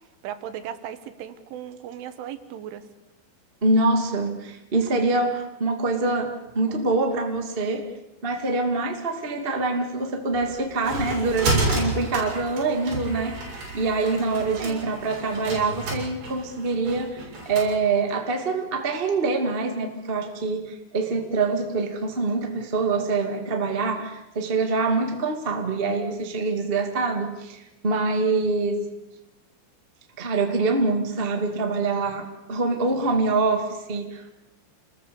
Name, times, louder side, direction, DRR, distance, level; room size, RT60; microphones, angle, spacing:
voice 1, 0.2-2.8 14.6-15.0, right 10 dB, 80° right, 10 dB, 3.8 m, -36 dB
voice 2, 3.6-7.9 8.2-13.4 13.7-28.9 30.2-34.4, right 3 dB, 30° right, 4 dB, 1.0 m, -25 dB
sound 1, 10.3-17.7, right 2 dB, 50° right, 8.2 m, -30 dB
28.0 x 20.5 x 7.1 m, 0.94 s
omnidirectional pair, 5.6 m